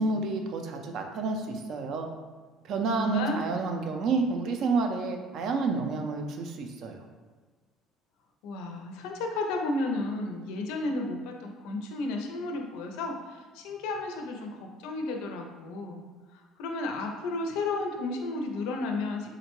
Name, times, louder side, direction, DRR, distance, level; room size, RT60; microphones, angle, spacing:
voice 1, 0.0-2.1 2.6-7.0, right 4 dB, 50° right, 4 dB, 0.4 m, -29 dB
voice 2, 2.9-3.4 8.4-16.0 16.3-19.3, left 2 dB, 80° left, 2 dB, 0.4 m, -33 dB
3.7 x 2.1 x 2.9 m, 1.4 s
cardioid pair, 150°, 0 cm